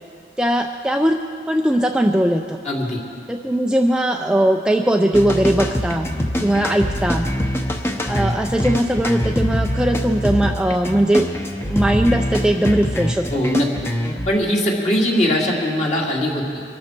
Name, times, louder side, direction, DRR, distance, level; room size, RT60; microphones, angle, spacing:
voice 1, 0.4-1.2 1.5-2.6 3.3-6.1 6.4-7.3 8.1-11.3 11.7-13.4, right 1 dB, 5° right, 3 dB, 0.4 m, -19 dB
voice 2, 2.6-3.0 13.3-13.7 14.3-16.6, equal, 40° left, -2 dB, 2.4 m, -20 dB
sound 1, 5.1-14.3, equal, 15° left, 0.9 m, -23 dB
24.0 x 12.5 x 4.5 m, 2.3 s
head